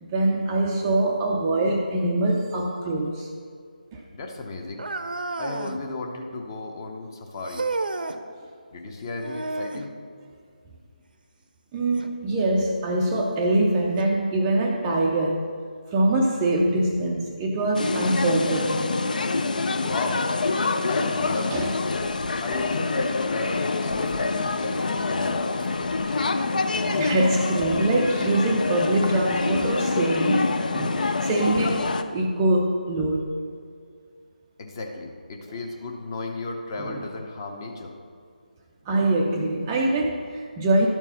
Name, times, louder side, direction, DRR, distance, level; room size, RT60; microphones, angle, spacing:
voice 1, 0.0-3.3 3.9-4.0 11.7-15.5 15.9-19.0 21.5-21.7 26.8-33.4 36.9-37.0 38.9-40.9, right 1 dB, 15° right, -1 dB, 0.4 m, -24 dB
voice 2, 4.1-4.8 5.4-7.7 8.7-9.9 19.7-20.2 20.9-22.2 22.4-25.9 34.6-37.9, left 3 dB, 25° left, 3 dB, 0.9 m, -34 dB
sound 1, 4.8-5.8 7.5-8.2 9.2-9.9 12.0-12.1 12.9-13.0 14.0-14.1, right 3 dB, 75° right, 0.7 m, -31 dB
sound 2, 17.7-32.0, left 3 dB, 60° left, 0.6 m, -26 dB
12.0 x 4.6 x 5.7 m, 2.2 s
figure-of-eight pair, 165°, 5 cm